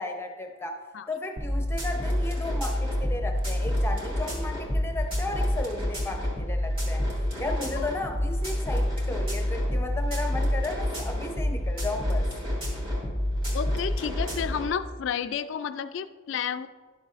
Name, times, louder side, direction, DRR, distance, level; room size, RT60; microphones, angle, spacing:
voice 1, 0.0-0.8 1.1-7.0 7.4-12.3, left 2 dB, 10° left, 3 dB, 0.7 m, -34 dB
sound 1, 1.4-14.7, left 1 dB, 25° right, 2.1 m, -28 dB
voice 2, 13.5-16.7, left 7 dB, 60° left, 13 dB, 0.3 m, -31 dB
11.5 x 7.2 x 2.5 m, 1.4 s
head